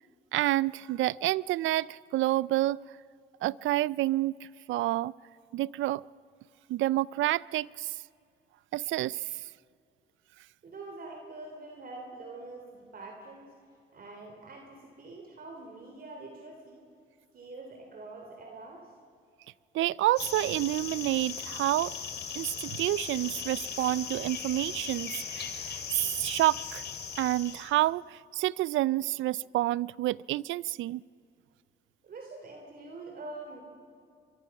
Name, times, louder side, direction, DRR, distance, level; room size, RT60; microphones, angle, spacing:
voice 1, 0.3-2.8 3.4-5.1 5.5-6.0 6.7-7.9 8.7-9.3 19.7-21.9 22.4-26.8 27.2-31.0, right 16 dB, 75° right, 23 dB, 0.4 m, -29 dB
voice 2, 10.6-13.5 13.9-16.8 17.3-18.9 32.0-33.6, right 2 dB, 50° right, 2 dB, 3.2 m, -45 dB
sound 1, 20.2-27.7, left 6 dB, 55° left, 2.8 m, -38 dB
24.0 x 23.0 x 6.0 m, 2.4 s
cardioid pair, 90°, 20 cm